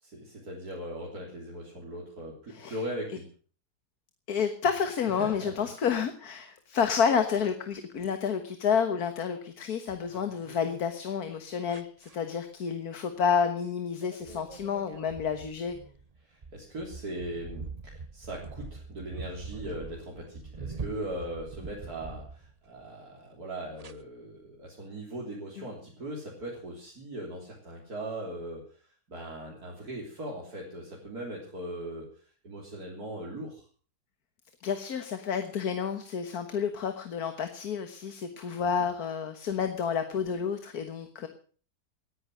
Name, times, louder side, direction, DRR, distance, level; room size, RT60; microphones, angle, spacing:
voice 1, 0.0-3.3 5.2-5.7 16.2-28.8 29.1-32.1 32.4-33.7 38.6-38.8, right 1 dB, 70° right, -3 dB, 4.1 m, -39 dB
voice 2, 4.3-15.8 25.6-25.7 34.6-41.3, left 7 dB, 70° left, 8 dB, 1.8 m, -30 dB
sound 1, 9.9-10.8 11.7-12.2 13.4-13.7 14.0-22.8 23.8-23.9, right 4 dB, 30° right, 0.8 m, -43 dB
18.5 x 10.5 x 6.4 m, 0.43 s
omnidirectional pair, 1.7 m